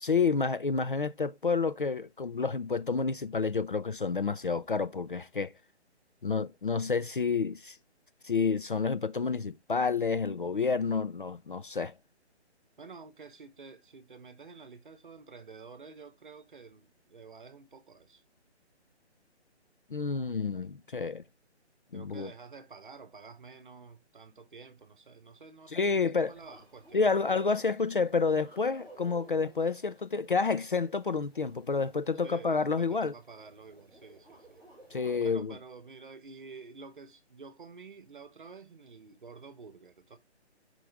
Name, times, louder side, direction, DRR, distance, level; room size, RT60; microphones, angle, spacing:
voice 1, 0.0-5.5 6.2-7.8 8.2-11.9 19.9-21.2 21.9-22.3 25.7-26.3 26.9-33.1 34.9-35.5, left 4 dB, 50° left, 0.4 m, -29 dB
voice 2, 12.8-18.2 21.9-27.0 32.2-34.6 35.2-40.2, right 4 dB, 45° right, 1.0 m, -50 dB
sound 1, 26.2-35.3, right 2 dB, 5° left, 2.8 m, -55 dB
7.5 x 4.9 x 3.4 m
hypercardioid pair, 175°, 34 cm